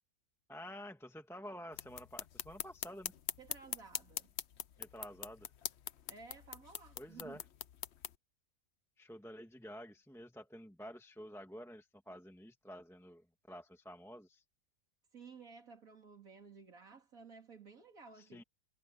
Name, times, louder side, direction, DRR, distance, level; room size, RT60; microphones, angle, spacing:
voice 1, 0.5-3.1 4.8-5.5 7.0-7.4 9.0-14.4 18.2-18.4, equal, ahead, 1.6 m, -50 dB
sound 1, 1.7-8.1, left 9 dB, 55° left, 0.9 m, -44 dB
voice 2, 3.4-4.3 6.1-7.4 15.1-18.4, right 5 dB, 70° right, 3.2 m, -55 dB
omnidirectional pair, 1.5 m